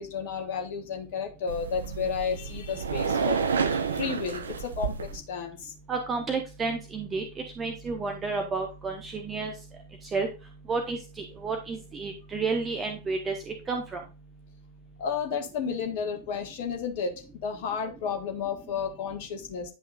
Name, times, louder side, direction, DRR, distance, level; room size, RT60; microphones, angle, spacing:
voice 1, 0.0-5.7 15.0-19.7, left 6 dB, 50° left, 3 dB, 1.6 m, -32 dB
sound 1, 1.5-5.2, right 6 dB, 70° right, 0.7 m, -30 dB
voice 2, 5.9-7.2 7.6-9.5 10.1-10.3 10.7-14.0, right 4 dB, 20° right, 4 dB, 1.1 m, -31 dB
10.5 x 5.5 x 2.5 m, 0.31 s
figure-of-eight pair, 90°, 0 cm